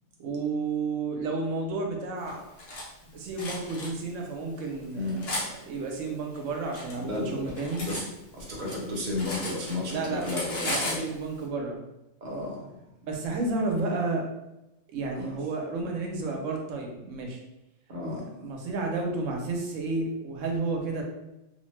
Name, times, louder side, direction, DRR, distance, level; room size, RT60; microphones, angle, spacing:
voice 1, 0.2-2.4 3.1-7.8 9.9-10.3 10.6-11.8 13.1-14.2 14.9-17.4 18.4-21.0, right 3 dB, 85° right, 1 dB, 1.0 m, -31 dB
Cutlery silverware, 2.3-2.8 3.4-3.9 4.6-5.5 6.3-8.1 8.4-9.9 10.2-11.0, left 1 dB, 55° left, 0.9 m, -35 dB
voice 2, 4.9-5.3 7.0-7.4 7.8-8.0 8.3-11.0 12.2-12.6 15.1-15.3 17.9-18.2, left 2 dB, 45° right, -3 dB, 0.7 m, -32 dB
2.7 x 2.1 x 3.1 m, 0.92 s
omnidirectional pair, 1.3 m